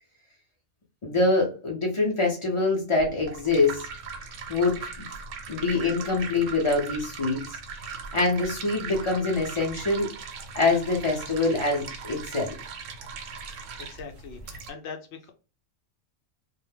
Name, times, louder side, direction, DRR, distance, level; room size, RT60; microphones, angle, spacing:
voice 1, 1.0-3.9 4.5-5.1 5.5-7.6 8.1-10.1 10.5-12.5, left 3 dB, 40° left, -2 dB, 0.4 m, -25 dB
sound 1, 3.0-14.7, right 5 dB, 90° right, 0.9 m, -39 dB
voice 2, 13.8-15.3, left 5 dB, 70° left, 4 dB, 0.8 m, -41 dB
2.2 x 2.0 x 3.2 m, 0.33 s
omnidirectional pair, 1.3 m